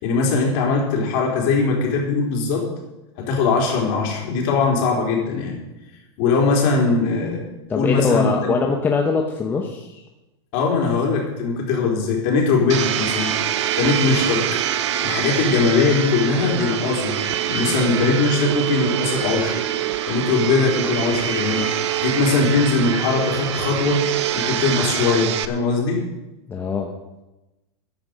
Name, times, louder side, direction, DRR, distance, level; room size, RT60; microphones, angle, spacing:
voice 1, 0.0-2.7 3.2-5.6 6.2-7.4 7.7-8.5 10.5-13.4 13.8-14.6 15.0-17.1 17.5-19.6 20.0-24.0 24.3-26.0, left 4 dB, 45° left, 0 dB, 4.1 m, -20 dB
voice 2, 7.7-10.0 26.5-26.9, left 4 dB, 15° left, 2 dB, 1.0 m, -22 dB
Domestic sounds home sounds, 12.7-25.4, right 11 dB, 75° right, 1.0 m, -24 dB
14.0 x 9.6 x 5.2 m, 1.0 s
supercardioid pair, 155°, 15 cm